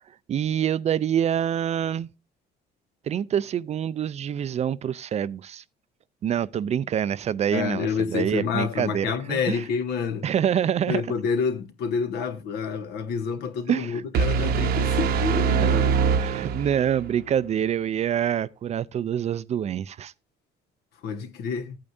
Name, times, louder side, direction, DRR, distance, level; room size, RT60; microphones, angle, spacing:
voice 1, 0.3-2.1 3.1-5.6 6.2-9.6 10.2-11.0 13.7-13.9 15.6-15.7 16.2-20.1, right 9 dB, 40° right, 0.4 m, -26 dB
voice 2, 7.5-10.3 10.9-16.1 21.0-21.8, left 6 dB, 75° left, 1.2 m, -28 dB
sound 1, 14.1-17.1, right 6 dB, 70° right, 0.9 m, -23 dB
14.5 x 8.7 x 2.6 m
cardioid pair, 110°, 17 cm